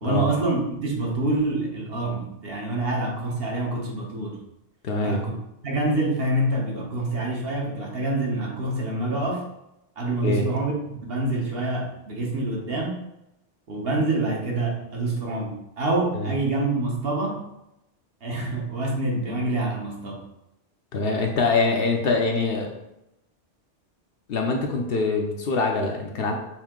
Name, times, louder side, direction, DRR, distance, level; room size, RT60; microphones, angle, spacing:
voice 1, 0.0-4.4 5.0-5.4 5.6-9.5 10.0-13.0 13.7-17.5 18.2-20.2 21.3-21.4, right 2 dB, 55° right, -1 dB, 1.0 m, -26 dB
voice 2, 4.8-5.2 10.2-10.4 16.1-16.3 20.9-22.7 24.3-26.3, left 3 dB, 60° left, 2 dB, 0.7 m, -24 dB
5.3 x 2.7 x 3.6 m, 0.87 s
omnidirectional pair, 1.2 m